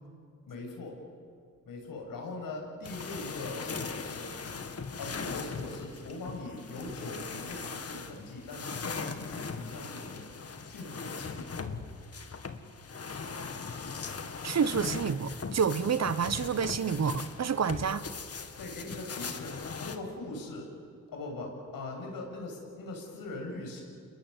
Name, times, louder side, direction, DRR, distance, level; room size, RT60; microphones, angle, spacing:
voice 1, 0.5-1.0 1.7-4.4 5.0-11.6 17.7-17.8 18.6-20.7 21.1-23.8, left 2 dB, 80° left, 7.0 m, -41 dB
sound 1, 2.8-20.0, left 5 dB, 45° left, 2.1 m, -40 dB
voice 2, 14.4-18.0, right 6 dB, 50° right, 1.1 m, -29 dB
28.5 x 21.5 x 8.3 m
cardioid pair, 70°, 34 cm